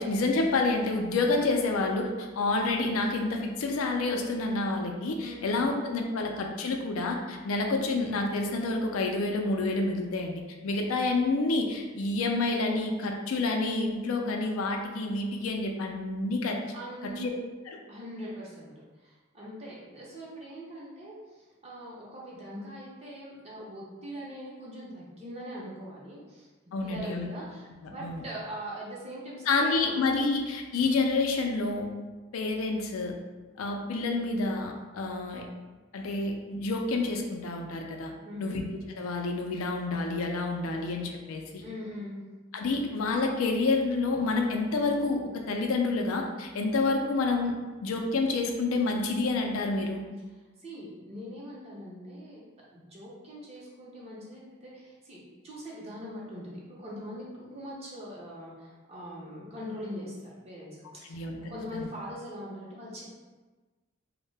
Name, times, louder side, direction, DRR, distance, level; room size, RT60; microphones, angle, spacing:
voice 1, 0.0-16.6 17.2-17.3 17.7-17.8 26.7-27.3 27.8-28.2 29.5-31.9 32.3-33.1 33.6-35.5 35.9-38.1 38.4-38.6 39.0-41.6 42.5-47.5 47.8-50.0 61.1-61.4 61.7-61.9, left 3 dB, 90° left, 2 dB, 0.4 m, -28 dB
voice 2, 16.7-17.3 17.9-18.7 19.0-26.5 26.8-30.0 38.2-38.6 41.6-42.2 50.6-52.4 52.7-61.2 61.5-63.3, equal, 30° right, -5 dB, 0.6 m, -42 dB
2.7 x 2.1 x 3.2 m, 1.3 s
head